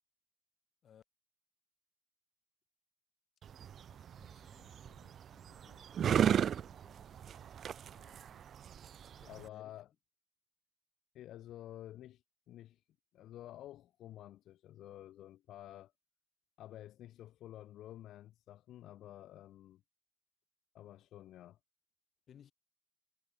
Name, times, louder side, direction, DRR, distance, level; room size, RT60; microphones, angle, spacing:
sound 1, 3.4-9.5, right 9 dB, 60° right, 0.5 m, -35 dB
voice 1, 3.6-8.5 9.0-9.8 22.3-22.5, left 9 dB, 65° left, 7.5 m, -65 dB
voice 2, 9.3-9.9 11.1-12.2 12.5-12.8 13.1-15.9 16.6-19.8 20.7-21.6, left 13 dB, 80° left, 5.8 m, -51 dB
cardioid pair, 90°, 0 cm